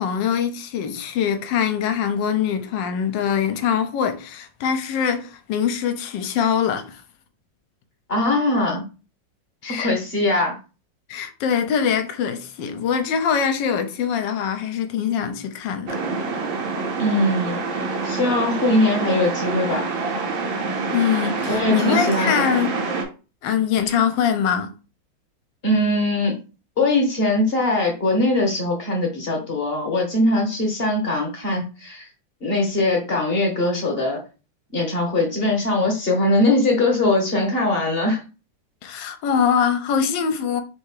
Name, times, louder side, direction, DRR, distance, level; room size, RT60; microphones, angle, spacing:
voice 1, 0.0-7.0 9.6-10.0 11.1-16.0 20.9-22.8 23.4-24.7 38.8-40.6, left 7 dB, 75° left, 1.3 m, -23 dB
voice 2, 8.1-8.8 9.6-10.6 17.0-17.6 18.0-19.9 21.5-22.3 23.9-24.0 25.6-26.4 26.8-32.1 32.4-34.2 34.7-38.2, left 2 dB, 40° left, 1.0 m, -21 dB
sound 1, 15.9-23.0, right 4 dB, 80° right, 1.6 m, -26 dB
3.6 x 2.7 x 4.7 m
omnidirectional pair, 2.1 m